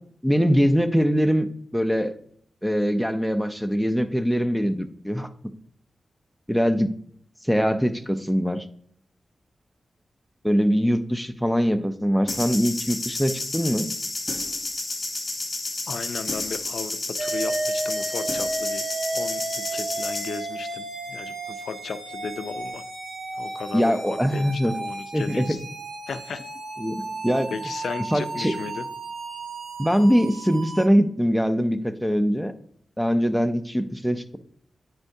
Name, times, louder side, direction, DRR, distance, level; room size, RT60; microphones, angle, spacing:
voice 1, 0.2-1.5 1.7-2.1 2.6-5.3 6.5-6.9 7.4-8.7 10.4-13.9 23.7-24.7 25.1-25.6 26.8-27.5 28.1-28.6 29.8-32.5 33.0-34.4, equal, ahead, 9 dB, 0.4 m, -22 dB
sound 1, 12.3-20.4, left 2 dB, 35° left, 1.1 m, -31 dB
voice 2, 15.9-22.8 23.3-25.7 26.1-26.4 27.5-28.9, left 5 dB, 80° left, 11 dB, 0.3 m, -35 dB
sound 2, 17.2-30.9, right 2 dB, 85° right, 0.9 m, -33 dB
9.6 x 4.4 x 2.6 m, 0.64 s
wide cardioid pair, 95°, 0 cm